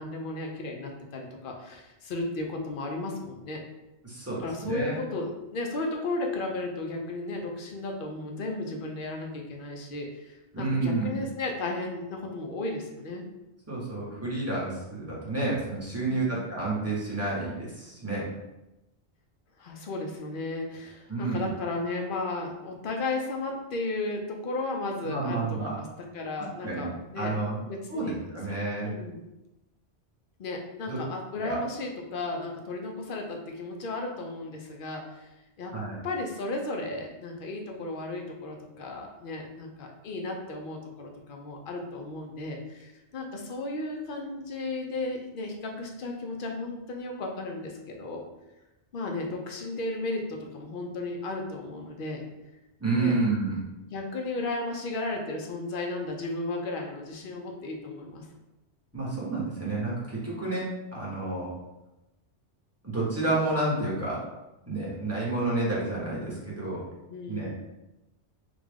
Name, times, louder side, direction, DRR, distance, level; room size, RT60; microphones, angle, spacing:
voice 1, 0.0-3.6 4.4-13.2 16.1-16.5 19.6-25.8 26.1-27.3 27.7-28.1 28.8-29.2 30.4-35.7 36.0-48.3 48.9-52.2 53.0-53.1 53.9-58.3 67.1-67.5, left 2 dB, 55° left, 2 dB, 0.7 m, -34 dB
voice 2, 4.0-5.0 10.5-11.2 13.7-18.3 21.1-21.5 25.0-25.7 26.6-26.9 27.2-27.6 27.9-28.9 30.9-31.0 31.4-31.6 35.7-36.0 52.8-53.6 58.9-61.5 62.8-64.2 64.7-66.8 67.3-67.5, right 2 dB, 15° right, -7 dB, 1.0 m, -30 dB
3.4 x 2.3 x 3.5 m, 0.97 s
omnidirectional pair, 1.2 m